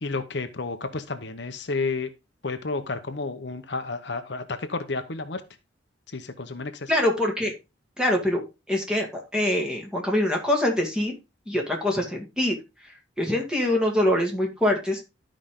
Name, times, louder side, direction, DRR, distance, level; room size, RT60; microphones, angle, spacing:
voice 1, 0.0-2.1 2.4-5.4 6.1-6.9, left 3 dB, 60° left, 8 dB, 0.9 m, -31 dB
voice 2, 6.9-7.5 8.0-11.1 11.5-12.5 13.2-15.0, left 1 dB, 5° right, 1 dB, 2.3 m, -24 dB
12.5 x 5.1 x 3.7 m, 0.26 s
head